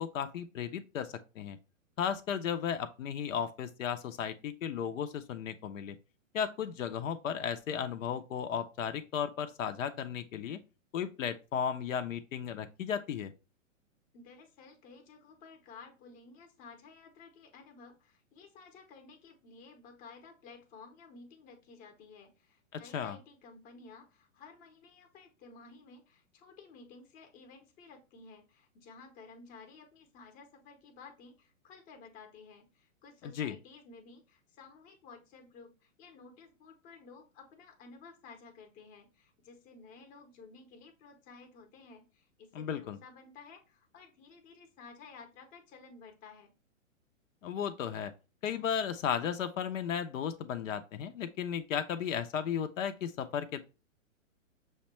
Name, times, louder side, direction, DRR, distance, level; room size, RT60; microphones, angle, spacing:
voice 1, 0.0-1.6 2.0-6.0 6.3-10.6 10.9-13.3 22.9-23.2 33.2-33.6 42.5-43.0 47.4-48.1 48.4-53.6, left 8 dB, 75° left, 0.6 m, -35 dB
voice 2, 14.1-46.5, left 4 dB, 20° left, 0.7 m, -54 dB
6.3 x 2.2 x 2.9 m
hypercardioid pair, 140°, 40 cm